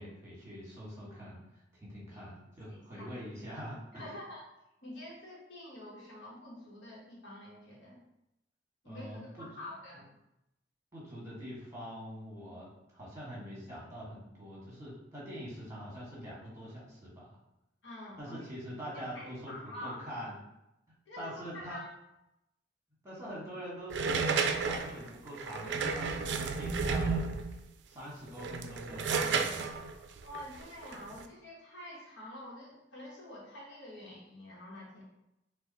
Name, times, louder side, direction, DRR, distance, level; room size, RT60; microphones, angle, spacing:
voice 1, 0.0-1.4 1.8-4.2 8.8-9.5 10.9-17.3 18.2-20.3 21.2-21.8 23.0-27.2 27.9-29.8, equal, 15° right, -6 dB, 1.4 m, -44 dB
voice 2, 2.7-3.1 3.9-4.4 4.8-8.0 8.8-10.1 17.8-18.4 18.9-20.1 21.1-21.9 30.2-35.0, left 1 dB, 80° left, -5 dB, 1.2 m, -47 dB
sound 1, 23.9-27.6 28.3-31.2, right 5 dB, 75° right, 0.4 m, -32 dB
4.0 x 2.4 x 4.0 m, 0.87 s
head